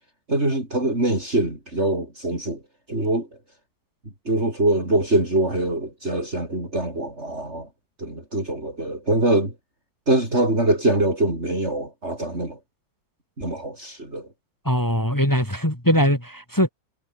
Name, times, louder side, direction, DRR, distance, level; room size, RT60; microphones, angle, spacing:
voice 1, 0.3-2.6 2.9-3.3 4.3-7.7 8.0-9.5 10.1-12.6 13.4-14.3, right 1 dB, 35° right, 7.7 m, -23 dB
voice 2, 14.6-16.7, equal, 10° left, 4.9 m, -21 dB
omnidirectional pair, 2.0 m